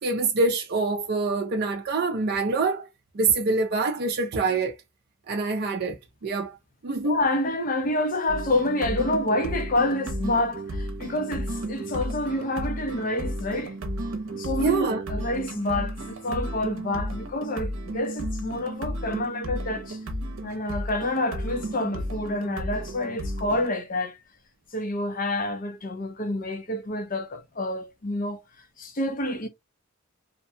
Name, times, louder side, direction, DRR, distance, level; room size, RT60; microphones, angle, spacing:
voice 1, 0.0-2.9 3.1-4.7 5.3-6.6 6.8-7.2 14.6-15.0, right 3 dB, 50° right, 0.4 m, -25 dB
voice 2, 7.0-13.8 14.3-20.0 20.4-24.2 24.7-28.4 28.8-29.5, left 1 dB, 40° left, 0.6 m, -28 dB
sound 1, 8.3-23.7, right 1 dB, 85° right, 0.7 m, -33 dB
2.6 x 2.1 x 2.6 m
head